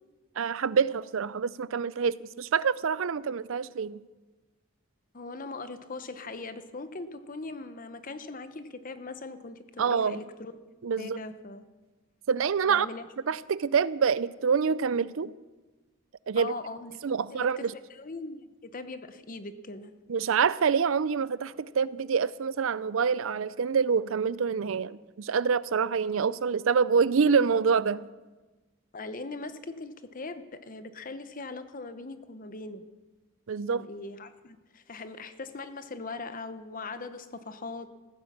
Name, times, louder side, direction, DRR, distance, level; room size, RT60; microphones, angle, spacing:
voice 1, 0.4-4.0 9.8-10.2 10.8-11.2 12.3-12.9 13.3-15.3 16.3-16.5 17.0-17.7 20.1-28.1 33.5-33.9, right 6 dB, 70° right, 0.5 m, -26 dB
voice 2, 5.1-10.6 11.0-11.6 12.7-13.1 16.4-17.0 17.3-17.6 17.9-19.9 28.9-32.8 33.7-37.9, left 3 dB, 40° left, 0.8 m, -40 dB
15.5 x 9.6 x 7.3 m
head